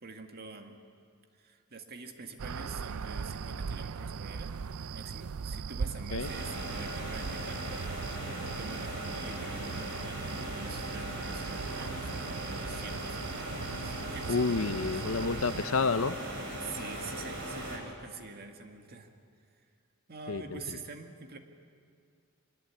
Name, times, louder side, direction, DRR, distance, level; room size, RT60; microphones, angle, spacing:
voice 1, 0.0-0.8 1.4-4.5 4.9-7.9 8.1-15.0 16.6-19.1 20.1-21.4, right 4 dB, 50° right, 5 dB, 1.9 m, -46 dB
sound 1, 2.4-15.7, right 5 dB, 90° right, 0.5 m, -39 dB
sound 2, 6.2-17.8, right 1 dB, 65° right, 5.2 m, -39 dB
voice 2, 14.3-16.2 20.3-20.6, left 4 dB, 75° left, 13 dB, 0.8 m, -29 dB
24.5 x 20.5 x 8.6 m, 2.3 s
head